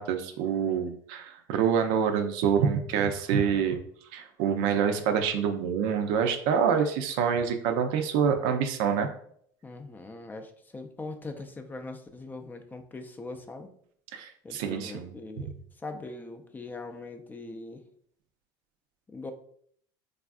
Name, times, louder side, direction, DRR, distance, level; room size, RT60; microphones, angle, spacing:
voice 1, 0.0-3.8 4.1-9.1 14.1-15.2, right 7 dB, 75° right, 7 dB, 0.4 m, -26 dB
voice 2, 9.6-13.7 14.4-15.5 15.8-17.8 19.1-19.3, left 3 dB, 15° left, 6 dB, 0.3 m, -41 dB
3.4 x 2.4 x 2.3 m, 0.63 s
supercardioid pair, 100°, 11 cm